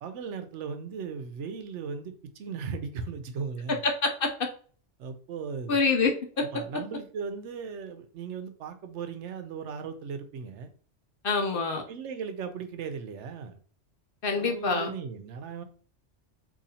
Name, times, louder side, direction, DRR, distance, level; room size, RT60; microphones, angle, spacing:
voice 1, 0.0-3.8 5.0-5.8 6.4-10.7 11.9-13.6 14.4-15.6, right 5 dB, 80° right, 8 dB, 0.9 m, -37 dB
voice 2, 3.8-4.3 5.7-6.1 11.2-11.8 14.2-14.9, left 4 dB, 55° left, 3 dB, 0.8 m, -25 dB
4.0 x 2.7 x 2.7 m, 0.43 s
omnidirectional pair, 1.2 m